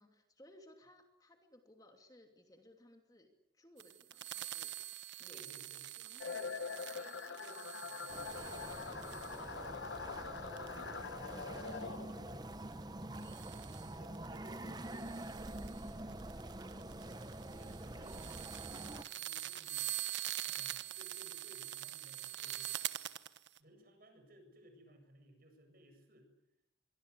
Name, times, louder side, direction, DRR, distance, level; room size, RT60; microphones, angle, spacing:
voice 1, 0.0-4.8 5.2-5.5 6.0-6.4 13.2-13.5, left 1 dB, 20° left, 4 dB, 2.7 m, -62 dB
sound 1, 3.8-10.7 13.2-23.6, right 13 dB, 70° right, 1.3 m, -44 dB
voice 2, 5.3-8.8 9.3-10.5 11.0-12.4 13.5-19.9 20.4-22.8 23.6-26.3, equal, 50° right, 5 dB, 7.7 m, -60 dB
sound 2, 6.2-12.4, left 5 dB, 80° left, 1.0 m, -44 dB
sound 3, 8.1-19.0, right 1 dB, 20° right, 0.9 m, -46 dB
25.5 x 23.5 x 8.3 m, 0.82 s
head